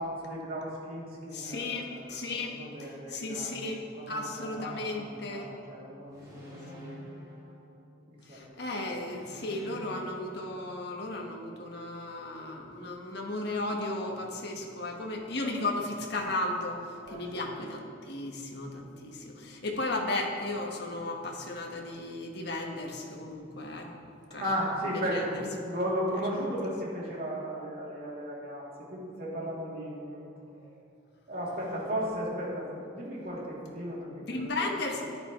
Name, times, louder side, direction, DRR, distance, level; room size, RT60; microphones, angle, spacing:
voice 1, 0.0-7.0 8.3-8.4 17.0-17.5 24.3-30.3 30.6-30.7 31.3-34.6, equal, 50° right, -6 dB, 3.0 m, -35 dB
voice 2, 1.3-5.5 8.2-23.9 24.3-24.4 24.8-25.4 34.3-35.0, left 2 dB, 60° left, 1 dB, 1.4 m, -35 dB
sound 1, 6.1-8.3 9.0-11.2, left 1 dB, 20° right, 2.9 m, -49 dB
13.0 x 11.0 x 3.1 m, 2.5 s
head